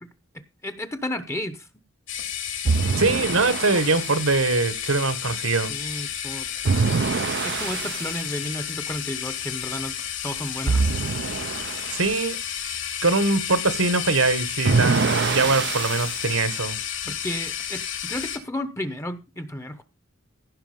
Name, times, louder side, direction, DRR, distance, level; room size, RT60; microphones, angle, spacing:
voice 1, 0.3-1.7 3.7-3.8 5.7-6.5 7.4-10.0 10.2-10.9 17.1-19.8, left 1 dB, 15° left, 11 dB, 1.0 m, -33 dB
sound 1, 2.1-18.4, left 9 dB, 65° left, 3.0 m, -31 dB
sound 2, 2.7-4.1 6.6-8.2 10.7-12.0 14.6-16.2, right 4 dB, 55° right, 0.6 m, -25 dB
voice 2, 3.0-5.7 11.9-12.4 13.0-16.8, right 3 dB, 80° right, 13 dB, 1.7 m, -22 dB
15.5 x 6.0 x 5.3 m, 0.27 s
head